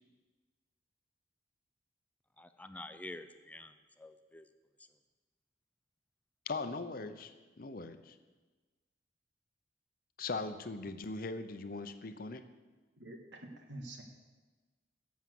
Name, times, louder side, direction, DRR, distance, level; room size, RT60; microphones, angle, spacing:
voice 1, 2.4-4.5, left 1 dB, 10° left, 10 dB, 0.4 m, -48 dB
voice 2, 6.5-8.2 10.2-12.4, left 3 dB, 50° left, 10 dB, 0.7 m, -40 dB
voice 3, 13.0-14.0, right 1 dB, 85° right, 4 dB, 1.6 m, -47 dB
11.0 x 7.3 x 7.6 m, 1.3 s
head